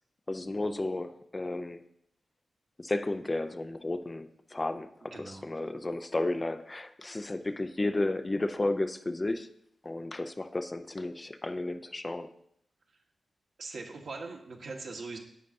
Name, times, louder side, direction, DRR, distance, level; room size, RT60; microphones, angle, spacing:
voice 1, 0.3-1.8 2.8-9.5 9.8-12.3, left 2 dB, 20° left, 9 dB, 0.4 m, -33 dB
voice 2, 5.1-5.4 13.6-15.2, right 3 dB, 70° right, 0 dB, 1.5 m, -41 dB
10.5 x 8.6 x 2.7 m, 0.73 s
wide cardioid pair, 120°, 0 cm